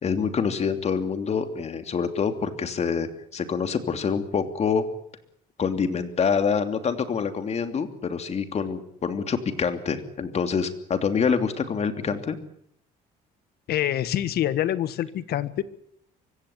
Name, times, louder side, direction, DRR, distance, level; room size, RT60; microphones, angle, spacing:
voice 1, 0.0-4.8 5.6-12.4, left 6 dB, 40° left, 8 dB, 3.0 m, -26 dB
voice 2, 13.7-15.6, left 12 dB, 70° left, 14 dB, 1.7 m, -26 dB
24.0 x 16.5 x 9.8 m, 0.71 s
cardioid pair, 110°, 17 cm